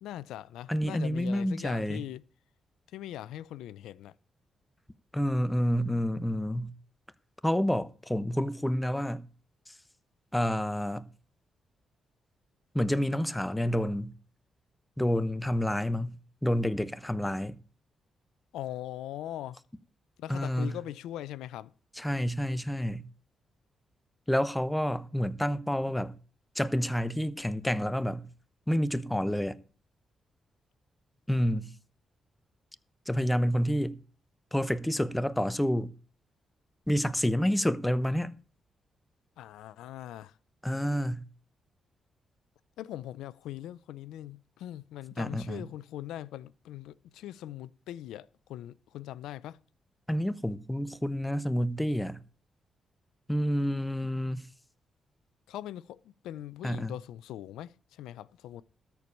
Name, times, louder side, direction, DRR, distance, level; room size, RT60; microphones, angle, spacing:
voice 1, 0.0-2.2 2.9-4.1 18.5-19.6 20.2-21.7 39.4-40.4 42.8-49.6 55.5-58.6, left 13 dB, 90° left, 0.4 m, -41 dB
voice 2, 0.7-2.0 5.1-6.7 7.4-9.2 9.7-9.8 10.3-11.1 12.7-14.1 15.0-16.2 16.4-17.6 20.3-20.8 22.0-23.1 24.3-26.1 26.5-28.3 28.7-29.6 31.3-31.7 33.1-34.0 34.5-35.9 36.9-38.4 40.6-41.2 45.2-45.6 50.1-52.2 53.3-54.5 56.6-56.9, equal, 10° left, 0.9 m, -29 dB
13.5 x 4.6 x 8.3 m
supercardioid pair, 60°, 0 cm